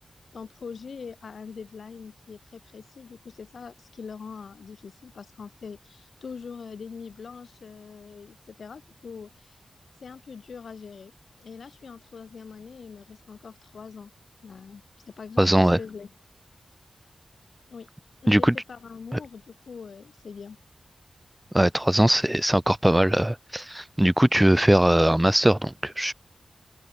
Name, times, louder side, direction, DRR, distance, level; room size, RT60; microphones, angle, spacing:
voice 1, 0.3-9.6 10.0-11.1 11.4-14.1 14.4-16.1 17.7-17.9 18.2-20.6, left 5 dB, 80° left, 3.5 m, -42 dB
voice 2, 15.4-15.8 18.3-18.5 19.1-19.2 21.5-26.1, right 1 dB, 10° right, 0.8 m, -20 dB
open air
wide cardioid pair, 140°, 0 cm